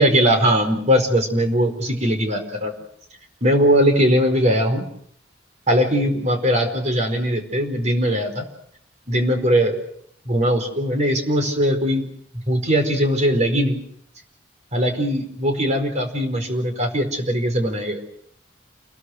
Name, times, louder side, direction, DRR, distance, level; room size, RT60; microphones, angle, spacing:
voice 1, 0.0-2.7 3.4-4.8 5.7-8.4 9.1-9.8 10.2-12.0 12.3-13.8 14.7-18.0, equal, 40° right, 6 dB, 4.7 m, -20 dB
29.5 x 21.5 x 6.5 m, 0.67 s
head